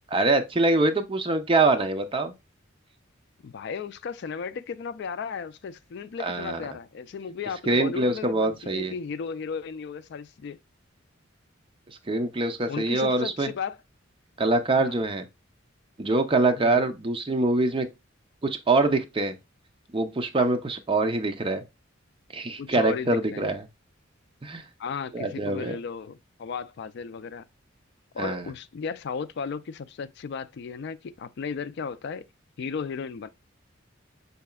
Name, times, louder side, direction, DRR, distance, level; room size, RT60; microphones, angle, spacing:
voice 1, 0.1-2.3 6.2-6.6 7.7-8.9 11.9-13.5 14.4-15.3 16.0-17.9 18.4-19.4 19.9-21.6 22.3-23.6 24.4-24.7 25.1-25.8 28.2-28.5, right 2 dB, 25° right, 0.6 m, -24 dB
voice 2, 3.4-10.6 12.7-13.8 14.8-15.0 16.6-16.8 22.6-23.5 24.8-27.4 28.1-32.2 32.6-33.3, left 6 dB, 55° left, 0.3 m, -35 dB
5.6 x 4.1 x 2.2 m
head